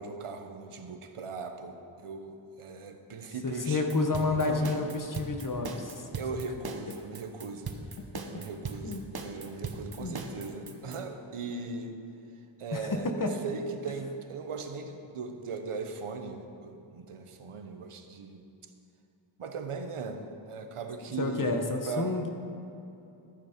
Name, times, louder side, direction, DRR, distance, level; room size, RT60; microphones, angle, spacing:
voice 1, 0.0-3.8 4.5-4.7 6.2-7.7 8.3-12.0 12.6-18.4 19.4-22.1, right 4 dB, 85° right, 6 dB, 1.0 m, -39 dB
voice 2, 3.4-6.1 8.8-9.0 10.0-10.2 12.7-13.3 21.2-22.3, left 3 dB, 40° left, 4 dB, 1.0 m, -30 dB
sound 1, 3.9-11.0, right 4 dB, 45° right, 1.0 m, -39 dB
13.5 x 7.0 x 5.1 m, 2.8 s
wide cardioid pair, 100°, 50 cm